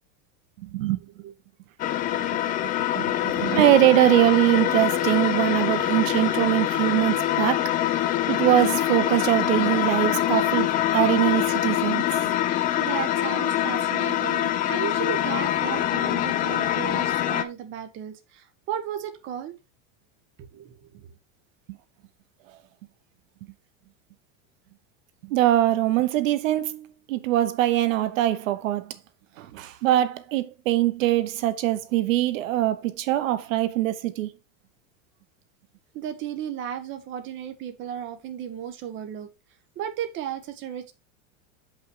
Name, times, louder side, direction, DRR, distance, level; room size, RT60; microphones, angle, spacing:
voice 1, 0.6-1.0 2.9-7.7 8.3-10.7 10.9-12.0 25.2-28.9 29.4-34.3, right 14 dB, 85° right, 1.1 m, -22 dB
sound 1, 1.8-17.4, left 12 dB, 20° left, 0.5 m, -24 dB
voice 2, 2.2-2.5 12.8-19.5 20.5-20.9 35.9-39.3 39.7-40.9, right 9 dB, 30° right, 1.2 m, -34 dB
7.0 x 5.7 x 4.7 m
supercardioid pair, 160°, 38 cm